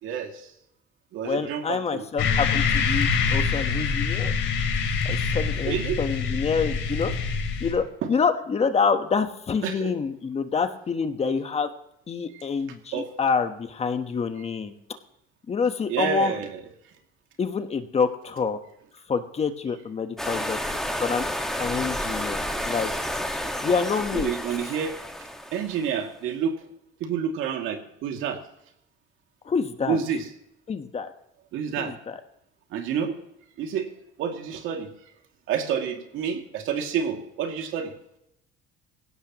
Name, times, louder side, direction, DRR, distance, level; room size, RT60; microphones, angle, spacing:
voice 1, 0.0-0.5 1.1-2.0 5.6-6.0 8.0-8.1 9.6-9.9 12.3-12.4 12.9-13.1 15.9-16.7 21.9-22.0 24.1-25.0 25.5-26.6 27.0-28.4 29.9-30.3 31.5-32.0 32.7-33.1 33.6-33.9 34.2-34.9 35.5-37.9, right 7 dB, 70° right, 4 dB, 2.4 m, -29 dB
voice 2, 1.2-4.3 5.0-7.1 7.6-11.7 12.1-14.7 15.5-16.3 17.4-18.6 19.1-20.6 21.0-21.2 21.6-22.9 23.6-24.3 29.5-30.0 30.7-31.1 31.8-32.2, left 5 dB, 30° left, 8 dB, 1.1 m, -27 dB
sound 1, 2.2-7.7, left 5 dB, 70° left, 3.5 m, -25 dB
sound 2, 20.2-26.0, equal, ahead, 1.6 m, -30 dB
19.5 x 16.5 x 3.0 m, 0.80 s
cardioid pair, 125°, 21 cm